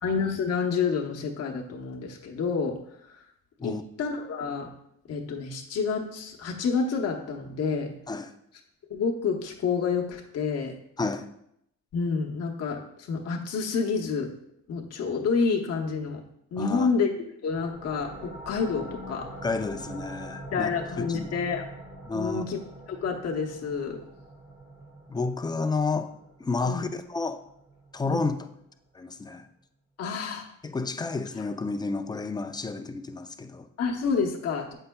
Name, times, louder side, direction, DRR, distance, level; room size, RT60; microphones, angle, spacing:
voice 1, 0.0-2.8 3.6-4.7 5.1-7.9 8.9-10.7 11.9-14.3 14.7-16.2 16.5-17.1 17.4-19.3 20.5-21.7 22.1-22.6 22.9-24.0 26.6-26.9 28.0-28.3 30.0-30.5 33.8-34.7, left 5 dB, 55° left, 0.9 m, -28 dB
voice 2, 11.0-11.3 16.6-16.9 19.4-20.7 21.0-21.3 22.1-22.4 25.1-26.1 26.4-27.5 27.9-28.5 28.9-29.5 30.6-33.7, left 3 dB, 15° left, 0.4 m, -30 dB
sound 1, 17.5-28.9, right 1 dB, 30° right, 1.6 m, -44 dB
7.9 x 5.4 x 2.2 m
cardioid pair, 90°, 30 cm